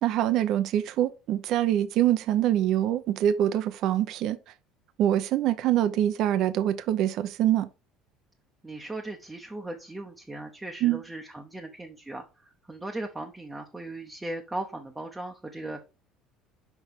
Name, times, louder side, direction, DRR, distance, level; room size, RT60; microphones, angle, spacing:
voice 1, 0.0-4.4 5.0-7.7 10.8-11.0, right 11 dB, 55° right, 0.6 m, -24 dB
voice 2, 8.6-15.8, right 2 dB, 10° right, 0.8 m, -38 dB
6.1 x 5.2 x 3.6 m
cardioid pair, 145°, 0 cm